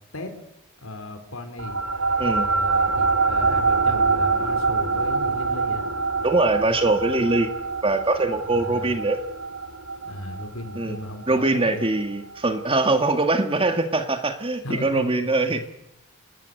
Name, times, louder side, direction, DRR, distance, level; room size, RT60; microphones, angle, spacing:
voice 1, 0.8-1.8 2.2-5.9 8.5-9.1 10.0-11.9 14.6-15.6, left 1 dB, 80° left, 7 dB, 4.4 m, -36 dB
sound 1, 1.6-12.4, right 4 dB, 75° right, 1.4 m, -25 dB
voice 2, 6.2-7.5 7.8-9.2 10.8-11.0 11.3-15.7, right 2 dB, 25° right, 7 dB, 2.0 m, -22 dB
27.0 x 20.5 x 8.0 m, 0.82 s
head